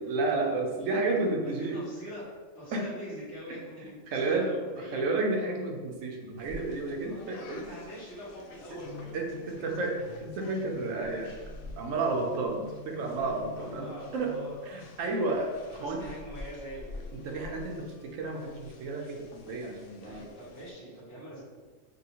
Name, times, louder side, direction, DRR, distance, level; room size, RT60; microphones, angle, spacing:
voice 1, 0.0-1.8 2.7-2.8 3.8-7.6 8.7-8.8 9.1-11.3 11.8-14.3 14.6-16.1 17.1-20.3, right 3 dB, 75° right, 1 dB, 1.0 m, -31 dB
voice 2, 0.6-1.0 1.4-2.2 2.5-5.1 7.0-9.8 13.6-14.9 15.7-17.1 20.0-21.4, equal, 55° left, -10 dB, 1.7 m, -44 dB
sound 1, 6.4-20.7, left 3 dB, 85° left, 1.0 m, -47 dB
5.3 x 2.3 x 2.9 m, 1.4 s
omnidirectional pair, 1.4 m